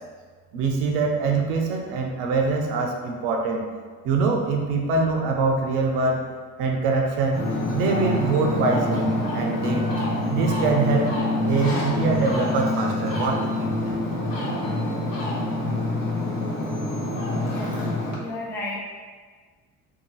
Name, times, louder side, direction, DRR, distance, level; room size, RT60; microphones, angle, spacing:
voice 1, 0.5-3.6 4.0-6.2 6.6-7.4 7.7-9.8 10.3-11.1 11.4-13.7, right 4 dB, 60° right, 2 dB, 0.6 m, -24 dB
Ocean, 7.3-18.2, left 1 dB, 45° left, 0.9 m, -26 dB
voice 2, 17.4-18.8, left 1 dB, 5° left, -3 dB, 0.4 m, -34 dB
2.7 x 2.3 x 3.0 m, 1.5 s
hypercardioid pair, 50°, 45 cm